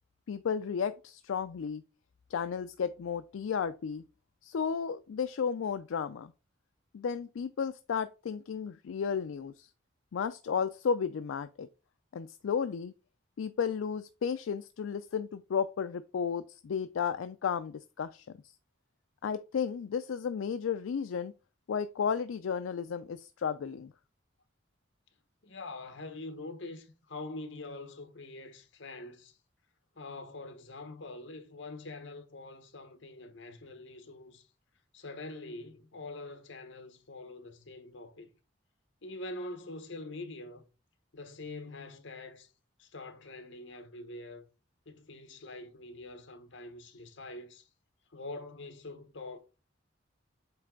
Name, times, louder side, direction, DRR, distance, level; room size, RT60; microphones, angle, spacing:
voice 1, 0.3-1.8 2.3-4.0 4.4-6.3 6.9-9.7 10.1-11.7 12.1-12.9 13.4-18.3 19.2-21.3 21.7-23.9, left 6 dB, 85° left, 0.4 m, -33 dB
voice 2, 25.4-29.4 29.9-34.5 34.9-38.3 39.0-40.7 41.1-42.5 42.8-44.5 44.9-47.7 48.1-49.4, left 2 dB, 70° left, 1.1 m, -44 dB
7.8 x 3.2 x 3.8 m
head